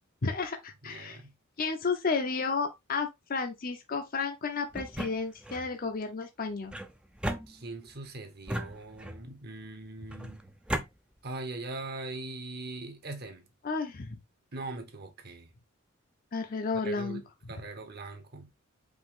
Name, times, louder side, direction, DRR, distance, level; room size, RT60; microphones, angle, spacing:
voice 1, 0.2-1.2 1.6-6.7 13.6-14.2 16.3-17.2, left 4 dB, 45° left, 0.6 m, -32 dB
voice 2, 0.8-1.3 7.5-10.5 11.2-13.5 14.5-15.5 16.8-18.5, right 2 dB, 50° right, 1.1 m, -41 dB
sound 1, 4.7-5.7 6.7-8.0 8.5-9.3 10.1-10.9, right 1 dB, 5° right, 0.4 m, -36 dB
5.1 x 2.8 x 3.6 m
head